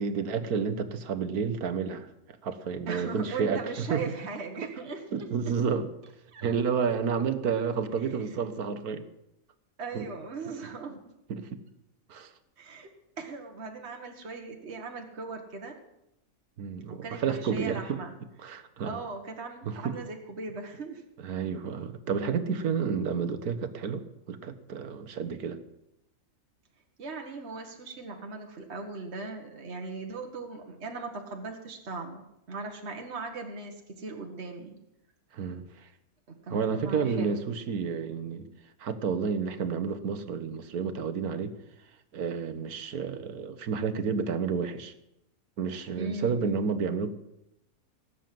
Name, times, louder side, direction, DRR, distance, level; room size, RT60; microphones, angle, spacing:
voice 1, 0.0-2.1 2.4-4.1 5.1-5.9 6.4-9.1 9.9-10.1 11.3-11.6 12.1-12.3 16.6-18.0 18.4-19.0 19.6-20.0 21.2-25.6 35.3-35.9 36.5-38.5 38.8-41.5 42.1-44.9 45.6-47.1, right 6 dB, 85° right, 10 dB, 1.6 m, -30 dB
voice 2, 2.9-5.5 6.3-6.4 9.8-11.0 12.6-12.9 13.2-15.8 16.9-18.1 18.8-21.0 27.0-34.8 36.3-37.4 46.0-46.5, right 4 dB, 50° right, 3 dB, 1.8 m, -39 dB
18.5 x 8.4 x 7.6 m, 0.85 s
omnidirectional pair, 1.5 m